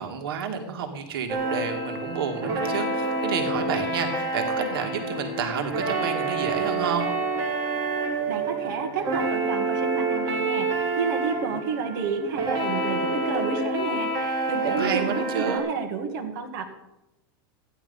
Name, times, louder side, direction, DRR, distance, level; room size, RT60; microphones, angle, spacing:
voice 1, 0.0-7.1 14.6-15.6, right 7 dB, 80° right, 5 dB, 2.0 m, -30 dB
sound 1, 1.3-15.6, right 2 dB, 30° right, 3.0 m, -28 dB
voice 2, 8.3-16.7, right 5 dB, 55° right, 3 dB, 1.9 m, -31 dB
15.0 x 10.5 x 5.4 m, 0.94 s
supercardioid pair, 175°, 12 cm